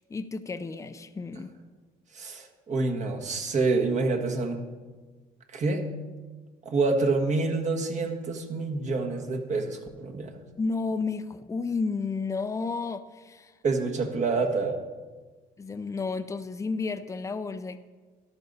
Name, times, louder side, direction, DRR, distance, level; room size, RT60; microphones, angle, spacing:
voice 1, 0.0-1.5 10.6-13.5 15.6-17.8, left 4 dB, 20° left, 10 dB, 0.6 m, -32 dB
voice 2, 2.1-4.6 5.5-5.9 6.6-10.4 13.6-14.8, right 3 dB, 45° right, 3 dB, 1.6 m, -27 dB
13.5 x 12.0 x 4.1 m, 1.4 s
cardioid pair, 110°, 17 cm